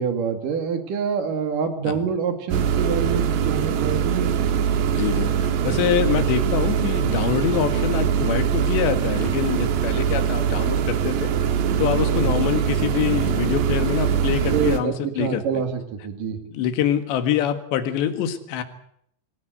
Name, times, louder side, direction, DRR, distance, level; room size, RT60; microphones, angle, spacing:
voice 1, 0.0-4.3 11.9-12.3 14.5-16.4, right 6 dB, 50° right, 7 dB, 3.6 m, -26 dB
sound 1, 2.5-14.8, right 8 dB, 75° right, 3.5 m, -22 dB
voice 2, 4.9-5.3 5.6-11.3 11.8-15.4 16.5-18.6, left 10 dB, 75° left, 9 dB, 3.9 m, -25 dB
24.5 x 16.5 x 8.0 m, 0.68 s
omnidirectional pair, 5.2 m